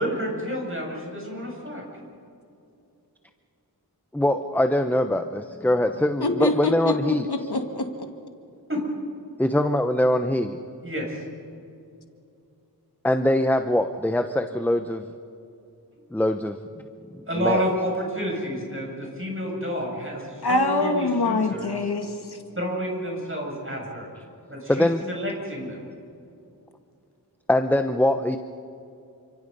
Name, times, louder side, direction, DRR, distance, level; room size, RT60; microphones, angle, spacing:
voice 1, 0.0-1.8 8.7-8.9 10.8-11.2 17.3-21.8 22.6-24.1 24.5-25.8, equal, 30° right, -1 dB, 7.7 m, -29 dB
voice 2, 4.1-7.2 9.4-10.6 13.0-15.0 16.1-16.6 17.4-17.6 24.7-25.0 27.5-28.4, left 1 dB, 5° left, 7 dB, 0.9 m, -22 dB
voice 3, 6.2-6.9 7.3-7.9 20.4-22.4, left 2 dB, 75° left, 5 dB, 2.0 m, -24 dB
29.0 x 26.0 x 5.5 m, 2.6 s
wide cardioid pair, 55°, 39 cm